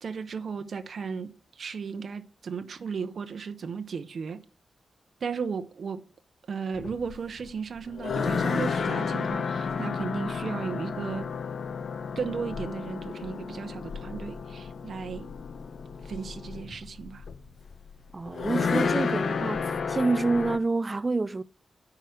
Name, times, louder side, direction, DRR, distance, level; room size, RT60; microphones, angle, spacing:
voice 1, 0.0-4.4 5.2-6.1 6.5-11.3 12.2-15.3 16.0-17.2, right 5 dB, 60° right, 0.6 m, -35 dB
sound 1, 6.7-20.6, left 5 dB, 65° left, 0.6 m, -32 dB
voice 2, 18.1-21.4, right 3 dB, 25° right, 0.3 m, -27 dB
9.1 x 4.8 x 6.3 m
wide cardioid pair, 110°, 0 cm